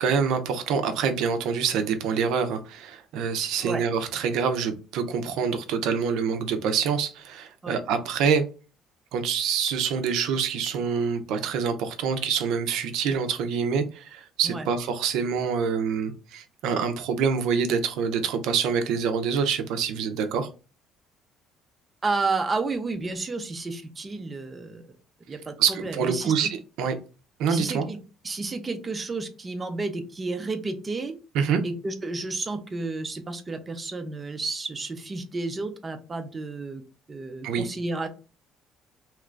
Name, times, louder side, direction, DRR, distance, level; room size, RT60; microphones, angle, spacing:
voice 1, 0.0-8.4 9.1-20.5 25.6-26.5 26.8-26.9 27.4-27.9 31.3-31.6 37.4-37.7, right 6 dB, 75° right, 0.6 m, -26 dB
voice 2, 22.0-24.8 25.3-26.3 27.5-28.0 28.2-31.1 31.6-36.8 37.1-38.1, right 3 dB, 20° right, 0.4 m, -31 dB
2.9 x 2.4 x 3.2 m
cardioid pair, 140°, 0 cm